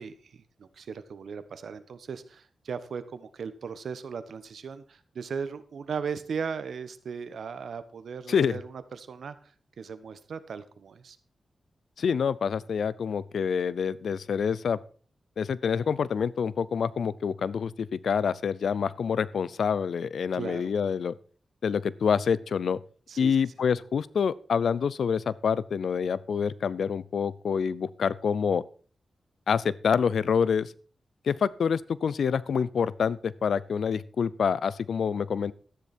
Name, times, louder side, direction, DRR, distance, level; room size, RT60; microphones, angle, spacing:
voice 1, 0.0-11.2 20.3-20.7 23.1-23.3, right 6 dB, 80° right, 13 dB, 1.2 m, -37 dB
voice 2, 8.3-8.6 12.0-14.8 15.4-21.1 21.6-22.8 23.2-28.6 29.5-30.7 31.2-35.5, left 6 dB, 80° left, 20 dB, 0.6 m, -27 dB
13.0 x 10.0 x 4.4 m, 0.41 s
wide cardioid pair, 85°, 0 cm